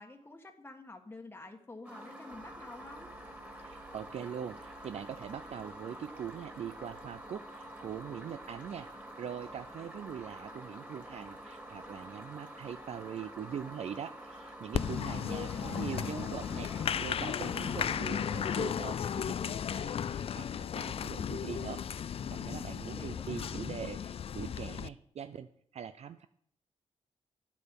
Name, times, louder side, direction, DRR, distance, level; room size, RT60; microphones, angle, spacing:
voice 1, 0.0-3.1 15.3-16.2 22.9-23.6, left 2 dB, 15° left, 3 dB, 1.4 m, -49 dB
sound 1, 1.8-19.8, right 1 dB, 15° right, 2.6 m, -48 dB
sound 2, 2.3-14.8, right 1 dB, 35° right, 1.9 m, -63 dB
voice 2, 3.6-21.8 22.4-26.3, right 8 dB, 60° right, 11 dB, 0.5 m, -42 dB
Applause, 14.7-24.9, left 8 dB, 50° left, 0.4 m, -35 dB
10.5 x 8.3 x 5.3 m, 0.67 s
cardioid pair, 70°, 13 cm